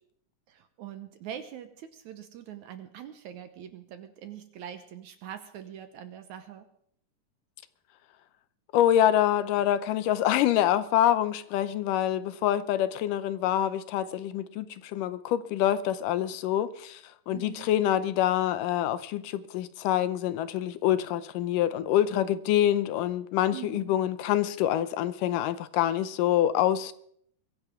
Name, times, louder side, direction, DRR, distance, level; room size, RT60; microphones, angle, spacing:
voice 1, 0.5-6.7 17.3-17.7 23.5-24.0, right 10 dB, 70° right, 2.1 m, -43 dB
voice 2, 8.7-17.0 17.3-26.9, left 11 dB, 80° left, 2.3 m, -26 dB
22.5 x 15.5 x 3.6 m
omnidirectional pair, 3.9 m